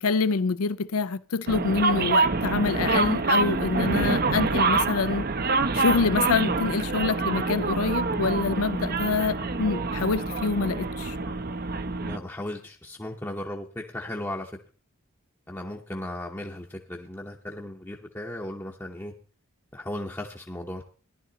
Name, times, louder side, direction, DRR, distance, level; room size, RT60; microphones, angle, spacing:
voice 1, 0.0-5.2 5.7-11.2, left 4 dB, 80° left, 0.5 m, -26 dB
sound 1, 1.5-12.2, right 3 dB, 45° right, 0.6 m, -26 dB
voice 2, 12.0-14.5 15.5-19.1 19.7-20.8, left 1 dB, 10° left, 0.8 m, -36 dB
14.0 x 11.0 x 4.0 m
head